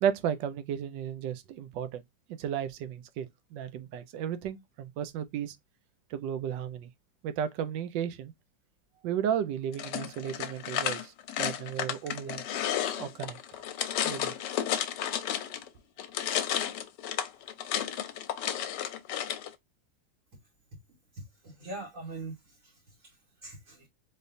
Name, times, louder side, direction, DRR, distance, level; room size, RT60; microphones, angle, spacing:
voice 1, 0.0-2.0 2.3-5.6 6.1-6.9 7.2-8.3 9.0-12.4 12.9-13.4 14.0-14.3, right 9 dB, 75° right, 1.3 m, -34 dB
sound 1, 9.7-15.7 16.0-19.5, left 10 dB, 75° left, 1.2 m, -32 dB
voice 2, 21.1-23.9, right 2 dB, 50° right, 1.6 m, -43 dB
4.2 x 3.2 x 2.5 m
omnidirectional pair, 2.0 m